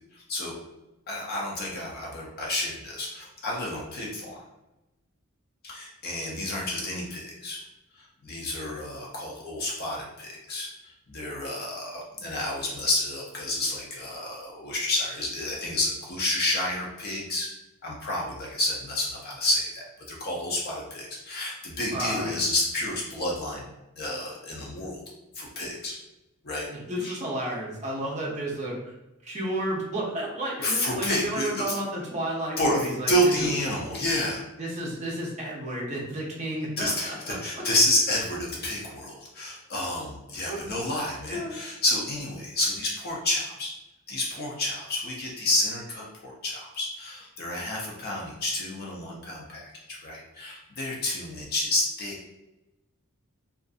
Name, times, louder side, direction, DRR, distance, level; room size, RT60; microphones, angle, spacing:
voice 1, 0.1-0.5 1.1-4.4 5.6-7.6 7.9-17.5 17.8-23.7 24.0-25.0 25.3-26.0 26.4-26.7 27.0-27.2 30.6-31.7 32.6-34.4 36.8-43.7 44.1-52.3, left 1 dB, 45° left, -3 dB, 0.5 m, -30 dB
voice 2, 21.9-22.4 26.7-28.9 29.2-33.3 34.6-37.6 40.5-40.6 41.3-41.6, right 1 dB, 30° right, -3 dB, 0.6 m, -32 dB
2.5 x 2.4 x 2.4 m, 0.97 s
head